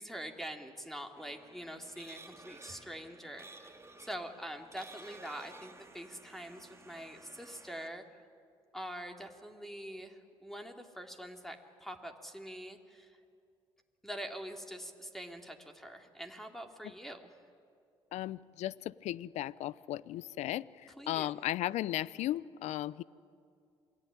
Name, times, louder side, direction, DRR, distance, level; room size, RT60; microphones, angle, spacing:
voice 1, 0.0-8.0 8.7-13.2 14.0-17.3 21.0-21.3, equal, 5° left, 4 dB, 3.4 m, -45 dB
sound 1, 1.2-7.9, right 3 dB, 20° right, 2.7 m, -54 dB
voice 2, 18.1-23.0, left 14 dB, 65° left, 21 dB, 0.7 m, -36 dB
27.5 x 21.5 x 10.0 m, 2.4 s
hypercardioid pair, 50°, 12 cm